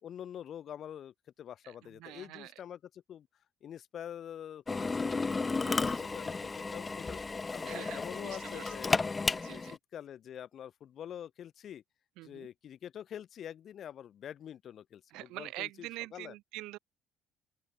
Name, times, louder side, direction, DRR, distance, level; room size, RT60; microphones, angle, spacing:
voice 1, 0.0-3.3 3.6-5.5 5.8-7.2 7.5-9.0 9.5-11.8 12.2-16.3, left 9 dB, 55° left, 2.1 m, -46 dB
voice 2, 1.6-2.5 5.6-6.0 7.6-8.7 9.3-9.8 12.2-12.5 15.1-16.8, right 19 dB, 80° right, 5.9 m, -45 dB
Drill, 4.7-9.8, left 4 dB, 25° left, 0.8 m, -33 dB
open air
supercardioid pair, 85°, 0 cm